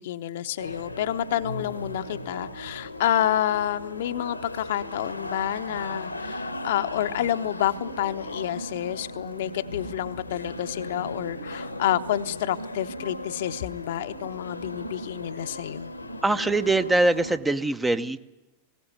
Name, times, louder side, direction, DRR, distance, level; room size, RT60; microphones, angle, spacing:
voice 1, 0.0-15.9, left 11 dB, 55° left, 10 dB, 0.8 m, -29 dB
sound 1, 0.6-17.4, left 1 dB, 85° left, 1.4 m, -37 dB
voice 2, 16.2-18.2, right 2 dB, 10° right, 12 dB, 0.8 m, -23 dB
20.0 x 18.0 x 9.5 m, 1.0 s
figure-of-eight pair, 90°, 0 cm